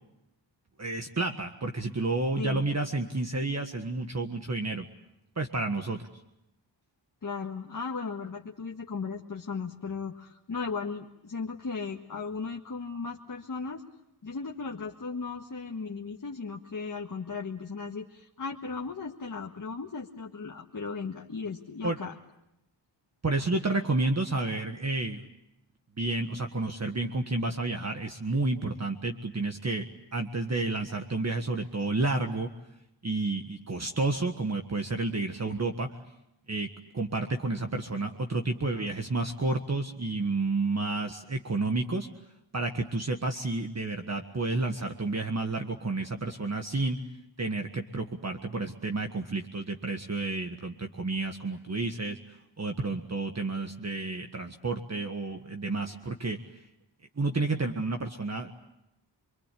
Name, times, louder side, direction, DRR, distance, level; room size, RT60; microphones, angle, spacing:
voice 1, 0.8-4.9 5.4-6.1 21.8-22.0 23.2-25.3 26.0-29.9 30.1-32.5 33.0-35.9 36.5-36.7 36.9-42.1 42.5-47.0 47.4-56.4 57.2-58.5, right 3 dB, 35° right, 4 dB, 1.6 m, -30 dB
voice 2, 2.4-2.7 7.2-13.8 14.2-22.1, left 4 dB, 45° left, 1 dB, 1.7 m, -36 dB
28.0 x 23.0 x 8.5 m, 0.86 s
wide cardioid pair, 75°, 45 cm